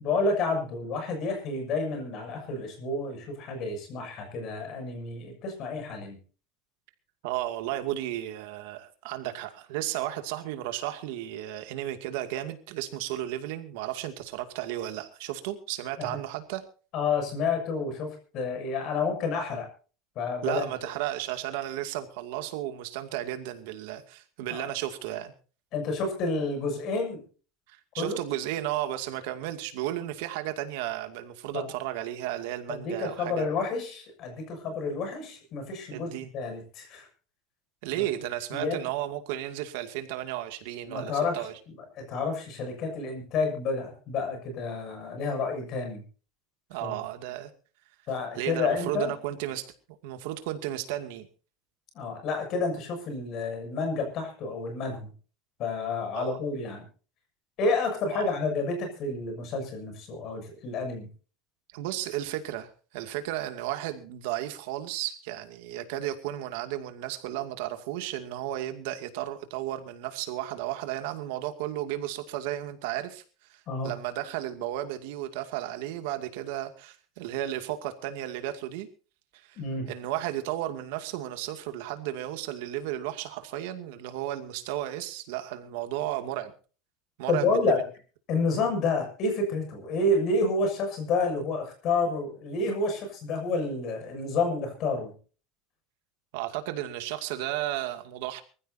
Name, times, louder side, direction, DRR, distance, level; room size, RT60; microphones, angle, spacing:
voice 1, 0.0-6.2 16.0-16.2 16.9-19.7 20.2-20.7 24.5-24.7 25.7-27.2 28.0-28.2 31.5-31.7 32.7-37.1 37.9-38.0 38.5-38.8 40.9-46.0 46.8-47.0 48.1-49.1 51.9-55.1 55.6-56.8 57.6-61.1 73.7-73.9 79.6-79.9 87.3-87.8 88.3-95.1, left 3 dB, 35° left, 5 dB, 7.0 m, -29 dB
voice 2, 7.2-16.6 20.4-25.3 27.7-33.5 35.9-36.3 37.8-41.5 46.7-47.5 48.4-49.6 50.0-51.3 56.1-56.4 58.1-58.3 61.7-73.2 73.5-78.9 79.3-79.6 79.9-86.5 87.2-87.8 88.6-88.8 96.3-98.4, right 13 dB, 70° right, 7 dB, 2.3 m, -34 dB
24.5 x 15.0 x 2.8 m, 0.39 s
cardioid pair, 175°, 0 cm